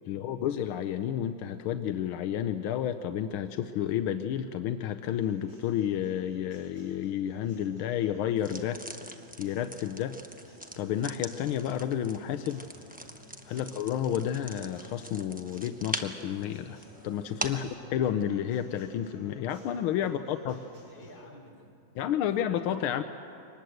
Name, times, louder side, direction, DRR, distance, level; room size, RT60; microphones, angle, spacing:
voice 1, 0.1-9.1 9.4-10.2 10.8-12.6 13.4-16.8 17.0-20.6 22.0-23.0, left 10 dB, 90° left, 9 dB, 1.6 m, -31 dB
Acoustic guitar, 5.1-21.1, equal, 85° right, 9.0 m, -56 dB
sound 1, 8.4-17.7, right 1 dB, 10° right, 0.6 m, -42 dB
voice 2, 19.9-21.7 22.0-22.4, left 1 dB, 50° left, 0 dB, 4.6 m, -54 dB
24.0 x 20.0 x 7.8 m, 2.5 s
omnidirectional pair, 2.2 m